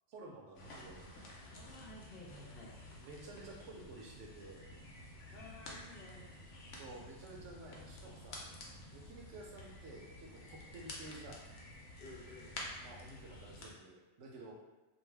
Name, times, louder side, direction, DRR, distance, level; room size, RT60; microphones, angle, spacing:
voice 1, 0.1-1.0 2.9-4.7 6.8-8.5 8.9-11.4 12.8-14.5, right 2 dB, 85° right, -1 dB, 0.9 m, -52 dB
sound 1, 0.5-13.7, left 1 dB, 90° left, 0.9 m, -51 dB
voice 2, 1.4-2.7 5.3-6.3 12.0-12.6, left 2 dB, 60° left, -2 dB, 0.7 m, -53 dB
2.5 x 2.1 x 3.2 m, 1.1 s
omnidirectional pair, 1.2 m